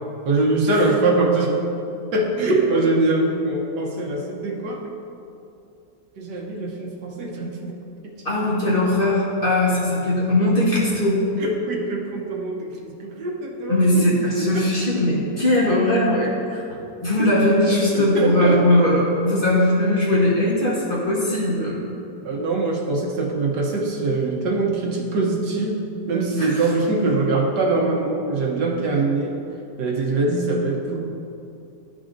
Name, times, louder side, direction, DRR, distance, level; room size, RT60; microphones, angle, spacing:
voice 1, 0.2-1.5 2.1-4.8 6.2-7.7 8.0-8.1 11.4-14.7 17.2-17.4 17.7-18.9 22.2-29.4 29.8-31.0, right 2 dB, 75° right, -1 dB, 1.4 m, -23 dB
voice 2, 8.2-11.2 13.7-16.6 17.0-21.8 26.4-26.6, left 1 dB, 35° left, -6 dB, 1.1 m, -20 dB
11.5 x 5.0 x 2.6 m, 2.7 s
omnidirectional pair, 1.9 m